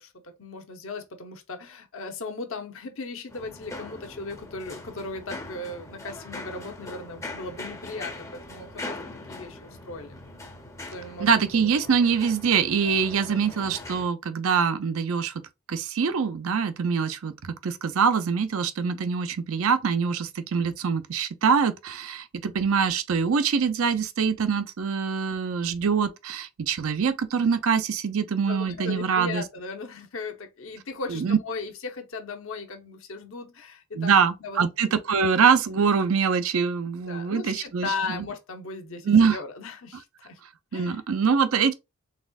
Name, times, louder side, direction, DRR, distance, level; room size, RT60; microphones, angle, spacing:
voice 1, 0.0-9.0 9.3-10.2 10.9-11.7 28.5-34.7 37.0-40.4 40.7-41.0, left 3 dB, 60° left, 0.8 m, -37 dB
sound 1, 3.3-14.1, left 2 dB, 15° left, 0.6 m, -41 dB
voice 2, 11.2-15.3 15.7-29.4 31.1-31.4 33.9-38.3 39.0-39.4 40.7-41.7, right 6 dB, 70° right, 0.5 m, -24 dB
4.1 x 3.5 x 2.3 m
head